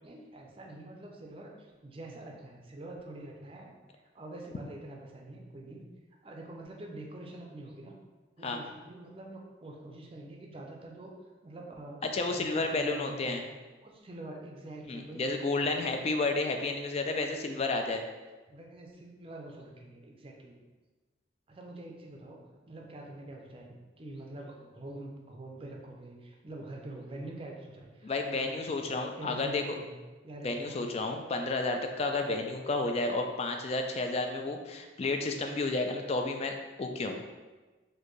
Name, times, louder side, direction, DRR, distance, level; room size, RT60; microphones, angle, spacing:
voice 1, 0.0-3.7 4.1-5.9 6.2-8.0 8.4-11.2 11.4-13.4 13.8-15.2 15.7-15.9 18.5-20.6 21.5-28.8 29.2-29.9 30.2-31.0, right 1 dB, 30° right, 0 dB, 0.5 m, -45 dB
voice 2, 12.1-13.4 14.9-18.0 28.0-29.6 30.4-37.2, left 3 dB, 35° left, 4 dB, 0.3 m, -31 dB
4.3 x 2.6 x 3.1 m, 1.2 s
head